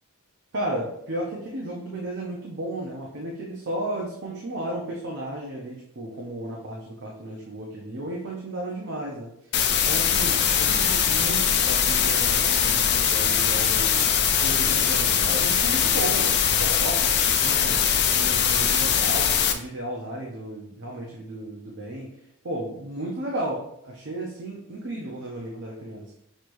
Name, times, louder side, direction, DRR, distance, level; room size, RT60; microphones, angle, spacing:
voice 1, 0.5-9.3 9.8-14.0 14.4-17.8 18.1-22.1 22.4-26.1, right 1 dB, 55° right, -3 dB, 0.8 m, -34 dB
sound 1, 9.5-19.5, left 8 dB, 50° left, 0.5 m, -22 dB
6.5 x 3.1 x 2.6 m, 0.74 s
head